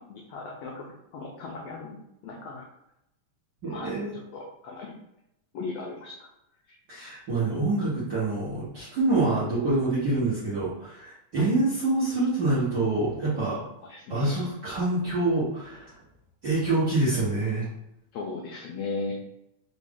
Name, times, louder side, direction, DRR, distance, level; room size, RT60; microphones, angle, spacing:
voice 1, 0.1-2.7 3.6-4.9 5.5-6.3 6.7-6.8 11.4-11.5 13.9-14.5 18.1-19.2, left 3 dB, 85° left, -1 dB, 1.4 m, -37 dB
voice 2, 3.6-4.1 6.9-13.6 14.1-15.9 16.4-17.7, right 2 dB, 55° right, -10 dB, 1.1 m, -26 dB
4.9 x 2.3 x 3.5 m, 0.84 s
omnidirectional pair, 3.5 m